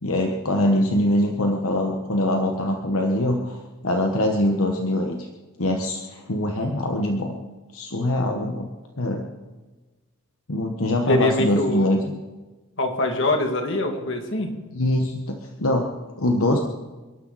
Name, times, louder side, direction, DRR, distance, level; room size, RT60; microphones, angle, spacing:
voice 1, 0.0-5.3 5.6-7.3 7.7-8.7 9.0-9.2 10.5-12.0 14.7-15.9 16.2-16.6, left 1 dB, 75° left, 2 dB, 1.3 m, -23 dB
voice 2, 11.1-11.9 12.8-14.5, left 1 dB, 55° left, 3 dB, 2.3 m, -23 dB
28.5 x 12.0 x 4.2 m, 1.2 s
head